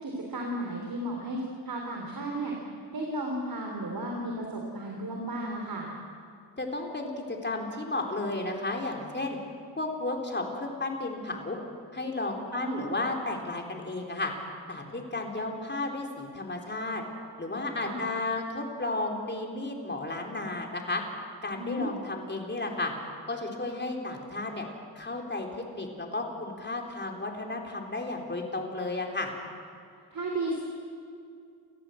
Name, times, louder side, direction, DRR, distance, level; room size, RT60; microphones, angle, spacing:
voice 1, 0.0-2.6 2.9-5.9 12.5-12.9 17.8-18.1 21.5-22.0 30.1-30.6, right 1 dB, 55° right, 0 dB, 3.7 m, -34 dB
voice 2, 6.6-9.4 9.8-11.6 11.9-14.3 14.7-17.0 17.4-21.0 21.4-22.9 23.3-24.7 25.0-29.3, left 2 dB, 25° left, 1 dB, 4.0 m, -33 dB
30.0 x 14.5 x 7.9 m, 2.3 s
cardioid pair, 75°, 42 cm